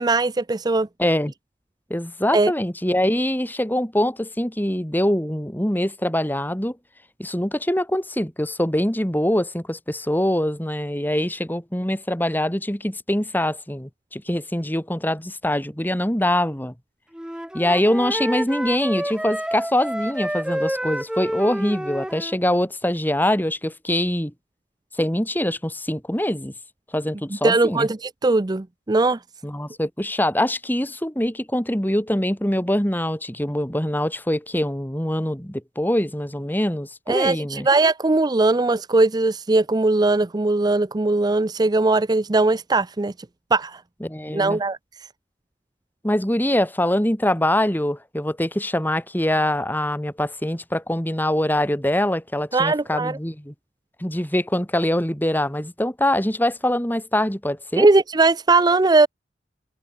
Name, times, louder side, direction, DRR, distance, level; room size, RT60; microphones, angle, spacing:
voice 1, 0.0-0.9 2.3-2.5 27.4-29.2 37.1-43.1 43.5-43.8 44.3-44.8 52.5-53.2 57.8-59.1, right 3 dB, 25° right, 0.5 m, -19 dB
voice 2, 1.0-1.3 1.9-6.8 7.2-16.7 17.5-24.3 25.0-26.5 26.9-27.9 29.4-37.7 44.0-44.6 46.0-53.5 54.0-57.9, left 1 dB, 10° left, 3.2 m, -23 dB
Wind instrument woodwind instrument, 17.1-22.4, equal, 5° right, 1.4 m, -29 dB
head